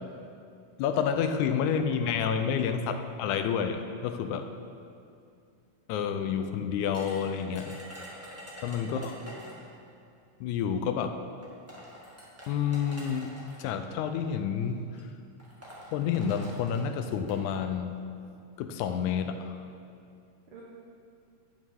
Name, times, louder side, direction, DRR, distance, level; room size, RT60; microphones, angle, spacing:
voice 1, 0.8-4.5 5.9-7.7 8.6-9.1 10.4-11.2 12.5-13.3 13.6-14.8 15.9-17.9 18.6-19.6, left 7 dB, 80° left, 7 dB, 1.8 m, -29 dB
sound 1, 6.9-9.7 10.8-10.9 11.4-13.6 14.5-14.7 15.0-15.1 15.4-17.4, equal, 10° right, 0.6 m, -46 dB
voice 2, 8.8-9.6 20.5-20.6, right 2 dB, 70° right, -3 dB, 1.3 m, -50 dB
11.0 x 8.5 x 3.6 m, 2.4 s
omnidirectional pair, 3.7 m